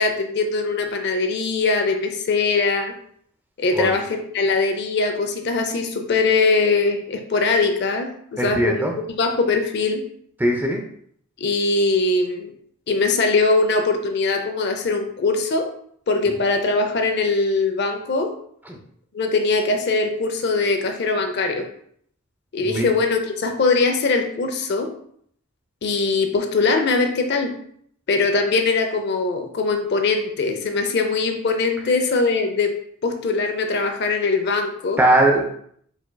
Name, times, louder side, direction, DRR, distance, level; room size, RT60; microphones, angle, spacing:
voice 1, 0.0-2.9 3.6-8.8 9.2-10.0 11.4-12.5 12.9-15.7 16.1-18.3 19.1-21.7 22.5-24.9 25.8-27.5 28.1-32.7 33.0-35.0, left 3 dB, 50° left, 5 dB, 0.5 m, -21 dB
voice 2, 8.4-8.9 10.4-10.8 18.7-18.8 22.6-22.9 35.0-35.5, right 1 dB, 10° right, 1 dB, 0.5 m, -19 dB
4.6 x 4.3 x 2.2 m, 0.65 s
head